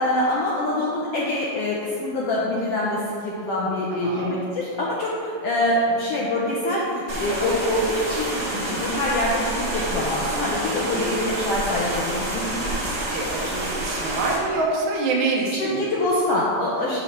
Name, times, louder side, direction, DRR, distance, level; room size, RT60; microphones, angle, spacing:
voice 1, 0.0-12.4 12.8-13.1 15.6-17.0, left 1 dB, 75° left, -5 dB, 1.4 m, -25 dB
voice 2, 3.9-4.3 8.5-8.9 10.6-11.2 12.8-15.8, right 3 dB, 75° right, -2 dB, 1.1 m, -27 dB
sound 1, 7.1-14.4, right 1 dB, 40° right, 1.0 m, -28 dB
6.9 x 3.2 x 5.7 m, 2.3 s
omnidirectional pair, 3.4 m